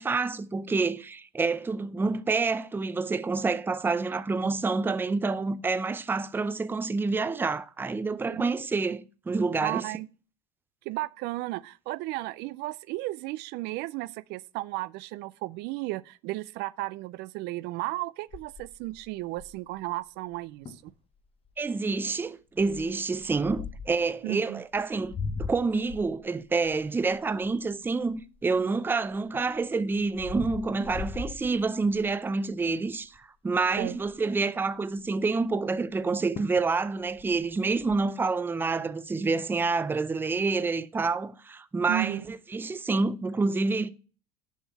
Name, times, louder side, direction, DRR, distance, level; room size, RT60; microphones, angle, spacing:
voice 1, 0.0-9.8 21.6-43.9, right 4 dB, 10° right, 0.5 m, -28 dB
voice 2, 9.6-10.1 10.9-20.9 24.2-24.6 33.8-34.0 41.9-42.3, right 19 dB, 65° right, 0.4 m, -34 dB
sound 1, 18.3-19.8 20.3-20.4 20.7-20.9 21.4-21.7 22.6-24.0 24.7-28.6 29.1-32.1 32.6-32.9 33.1-33.2 33.5-34.3 35.9-36.0 36.4-36.7 37.0-38.0, left 5 dB, 30° left, 0.9 m, -40 dB
7.2 x 5.7 x 5.9 m
supercardioid pair, 115°, 19 cm